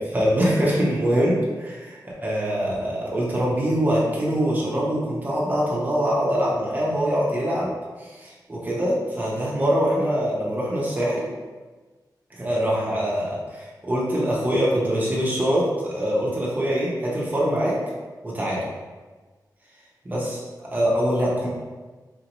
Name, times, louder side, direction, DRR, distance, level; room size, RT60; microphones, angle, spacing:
voice 1, 0.0-7.7 8.0-11.2 12.3-17.8 18.2-18.6 20.0-21.5, equal, 25° right, -6 dB, 0.9 m, -24 dB
4.3 x 2.8 x 3.0 m, 1.3 s
wide cardioid pair, 160°, 7 cm